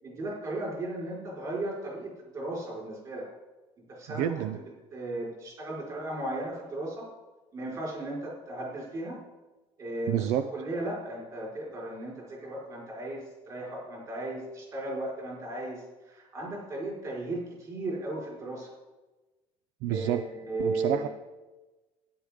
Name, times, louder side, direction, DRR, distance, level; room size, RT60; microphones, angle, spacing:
voice 1, 0.0-3.3 3.9-4.6 4.9-7.1 7.5-9.2 9.8-18.7 19.9-21.1, right 2 dB, 30° right, -4 dB, 4.5 m, -36 dB
voice 2, 4.1-4.6 10.1-10.5 19.8-20.2 20.6-21.1, right 11 dB, 80° right, 11 dB, 0.5 m, -29 dB
13.0 x 10.0 x 3.6 m, 1.1 s
cardioid pair, 160°, 12 cm